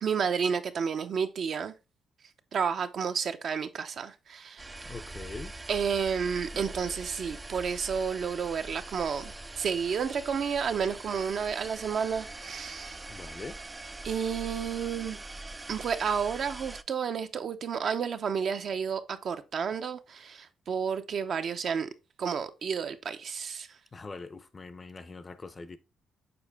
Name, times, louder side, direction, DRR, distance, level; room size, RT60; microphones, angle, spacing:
voice 1, 0.0-1.7 2.5-4.6 5.7-13.0 14.0-15.2 15.7-21.9 22.2-23.7, right 6 dB, 55° right, 0.7 m, -31 dB
sound 1, 4.6-16.8, right 2 dB, 20° right, 0.4 m, -43 dB
voice 2, 4.9-5.5 13.1-13.6 23.9-25.8, left 3 dB, 30° left, 0.6 m, -42 dB
6.9 x 4.5 x 3.4 m
cardioid pair, 90°, 0 cm